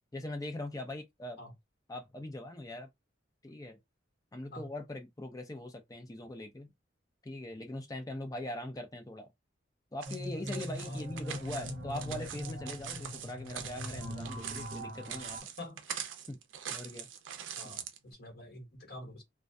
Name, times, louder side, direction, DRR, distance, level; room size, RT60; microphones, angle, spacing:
voice 1, 0.1-1.4 1.9-2.9 3.4-3.8 4.3-6.7 7.2-9.3 9.9-15.4 16.3-16.4 16.7-17.1, left 1 dB, 20° left, 0.5 m, -41 dB
sound 1, 10.0-15.4, equal, 60° right, 1.1 m, -41 dB
sound 2, 10.0-18.0, right 8 dB, 80° right, 0.4 m, -43 dB
voice 2, 15.6-16.0 17.5-19.2, left 1 dB, 55° left, 1.1 m, -47 dB
2.2 x 2.2 x 2.6 m
head